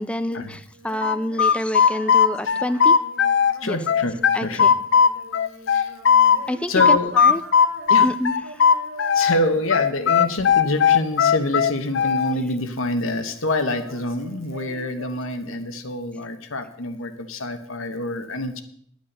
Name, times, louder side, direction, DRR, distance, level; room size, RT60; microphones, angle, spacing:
voice 1, 0.0-3.0 3.6-3.8 4.3-4.7 6.5-7.4 8.0-8.6, left 1 dB, 5° left, 11 dB, 0.4 m, -28 dB
Female singing, 0.7-11.1 11.3-13.0 13.3-15.9, right 1 dB, 80° right, 2.0 m, -44 dB
sound 1, 1.0-3.5 3.9-6.4 6.8-9.4 9.7-12.3, left 7 dB, 60° left, 0.6 m, -17 dB
voice 2, 3.6-4.7 5.7-5.9 6.7-7.1 7.9-8.1 9.1-18.6, left 1 dB, 80° left, 9 dB, 1.2 m, -26 dB
10.5 x 8.4 x 6.7 m, 0.65 s
head